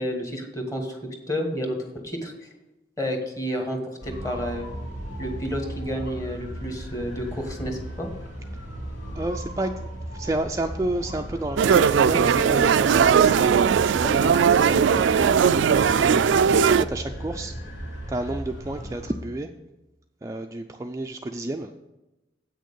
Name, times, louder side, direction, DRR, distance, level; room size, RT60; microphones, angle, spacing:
voice 1, 0.0-1.8 2.0-2.5 3.0-4.7 5.2-8.1, equal, 20° left, 3 dB, 1.4 m, -30 dB
sound 1, 4.0-19.1, right 1 dB, 90° left, 2.8 m, -36 dB
voice 2, 9.1-16.4 16.7-17.5 18.1-19.5 20.2-21.7, right 1 dB, 15° right, 4 dB, 0.3 m, -31 dB
sound 2, 11.6-16.8, right 7 dB, 90° right, 0.3 m, -19 dB
8.3 x 6.4 x 6.7 m, 1.0 s
head